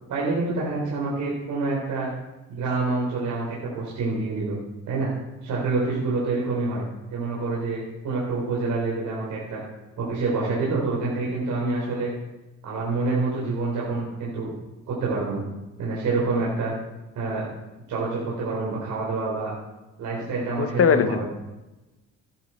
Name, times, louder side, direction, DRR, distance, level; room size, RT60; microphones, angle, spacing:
voice 1, 0.1-2.1 2.5-4.6 4.9-5.1 5.4-9.6 10.0-12.1 12.6-14.5 14.9-15.5 15.8-16.7 17.2-17.4 17.9-19.5 20.0-21.3, right 3 dB, 80° right, -5 dB, 4.2 m, -27 dB
voice 2, 20.6-21.2, left 6 dB, 50° left, 9 dB, 1.3 m, -20 dB
16.5 x 10.5 x 4.5 m, 1.0 s
cardioid pair, 90°, 30 cm